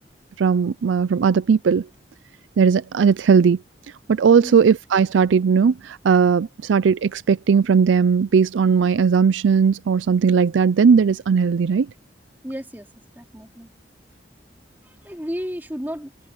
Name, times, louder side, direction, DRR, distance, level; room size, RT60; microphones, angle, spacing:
voice 1, 0.4-1.9 2.6-3.6 4.1-11.9, right 6 dB, 90° right, 0.4 m, -17 dB
voice 2, 12.4-12.9 13.1-13.7 14.8-16.1, equal, 10° right, 3.1 m, -33 dB
head